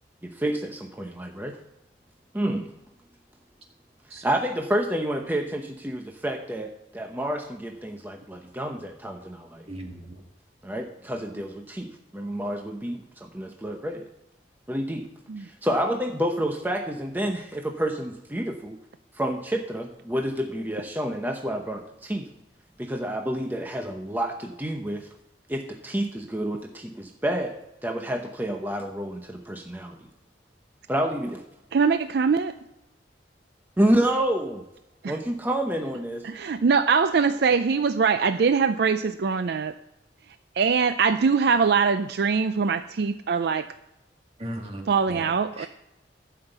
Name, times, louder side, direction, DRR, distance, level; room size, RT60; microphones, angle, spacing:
voice 1, 0.2-1.6 2.3-2.7 4.2-9.7 10.6-14.0 14.7-15.1 15.4-18.8 19.1-22.3 22.8-25.1 25.5-30.0 30.9-31.4 33.8-34.7 35.1-36.2, right 1 dB, 10° right, 3 dB, 0.7 m, -29 dB
voice 2, 9.7-10.2 44.4-45.7, right 1 dB, 35° right, 1 dB, 1.9 m, -38 dB
voice 3, 31.7-32.6 35.0-35.2 36.2-39.7 40.6-43.7 44.9-45.7, right 5 dB, 60° right, 11 dB, 0.4 m, -22 dB
11.5 x 5.8 x 7.9 m, 0.92 s
head